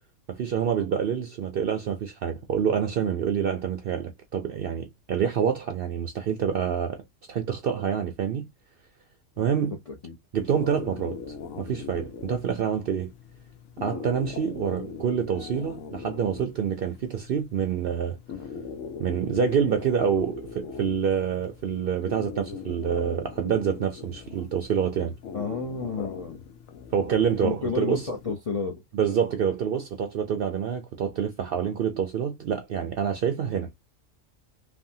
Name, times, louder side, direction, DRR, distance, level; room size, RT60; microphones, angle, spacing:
voice 1, 0.3-7.0 7.3-8.5 9.4-9.8 10.3-13.1 13.8-18.2 19.0-25.1 26.9-28.1 28.9-33.7, right 7 dB, 65° right, 0.6 m, -27 dB
sound 1, 10.4-28.3, left 6 dB, 85° left, 1.0 m, -41 dB
voice 2, 25.3-26.4 27.4-28.8, left 5 dB, 45° left, 0.4 m, -31 dB
3.3 x 2.1 x 2.6 m
omnidirectional pair, 1.4 m